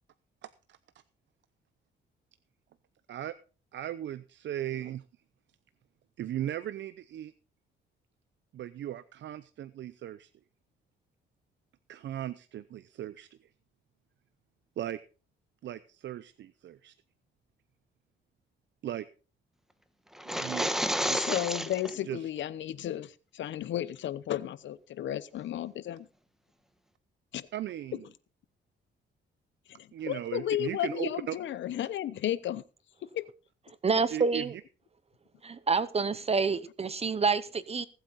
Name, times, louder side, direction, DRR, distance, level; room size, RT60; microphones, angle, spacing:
voice 1, 0.4-0.8 3.1-3.3 3.7-5.0 6.2-7.3 8.5-10.3 11.9-13.5 14.8-15.0 15.6-16.9 18.8-19.1 20.3-21.2 22.1-22.2 27.5-28.0 29.9-31.4 34.1-34.6, right 11 dB, 65° right, 0.7 m, -37 dB
sound 1, 20.1-21.9, equal, ahead, 1.3 m, -30 dB
voice 2, 21.1-26.1 27.3-27.5 29.7-32.6 33.0-33.3, left 12 dB, 70° left, 0.9 m, -33 dB
voice 3, 33.8-34.5 35.4-37.9, right 5 dB, 30° right, 0.9 m, -28 dB
19.5 x 8.2 x 4.1 m
cardioid pair, 90°, 20 cm